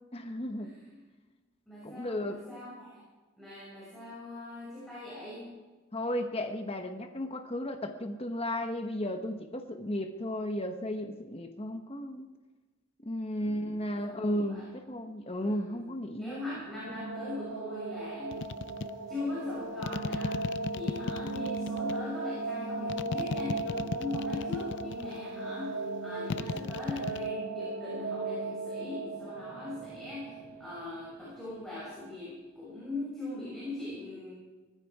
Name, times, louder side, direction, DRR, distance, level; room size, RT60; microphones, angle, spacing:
voice 1, 0.1-0.8 1.8-2.4 5.9-12.3 13.0-16.6, left 1 dB, 30° left, 5 dB, 1.0 m, -34 dB
voice 2, 1.7-3.0 3.4-5.6 13.4-14.7 15.4-15.8 16.2-18.5 19.1-34.3, left 2 dB, ahead, -8 dB, 5.9 m, -41 dB
sound 1, 16.4-31.3, right 2 dB, 80° right, 2.1 m, -37 dB
sound 2, 18.3-18.9 19.8-22.0 22.9-25.2 26.3-27.3, left 4 dB, 60° left, 0.5 m, -35 dB
18.5 x 15.0 x 4.8 m, 1.2 s
head